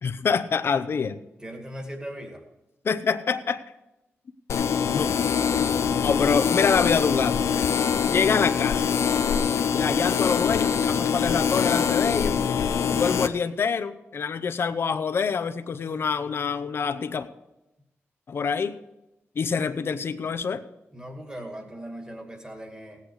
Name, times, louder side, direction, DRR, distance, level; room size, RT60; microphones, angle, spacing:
voice 1, 0.0-1.2 2.8-3.6 4.9-5.1 6.0-7.4 8.1-8.8 9.7-12.4 12.9-17.3 18.3-18.8 19.3-20.6, left 6 dB, 55° left, 10 dB, 0.7 m, -26 dB
voice 2, 1.4-2.4 20.9-23.0, equal, 15° right, 3 dB, 2.3 m, -38 dB
sound 1, 4.5-13.3, left 7 dB, 90° left, 0.6 m, -24 dB
17.0 x 8.4 x 4.8 m, 0.94 s
wide cardioid pair, 115°, 5 cm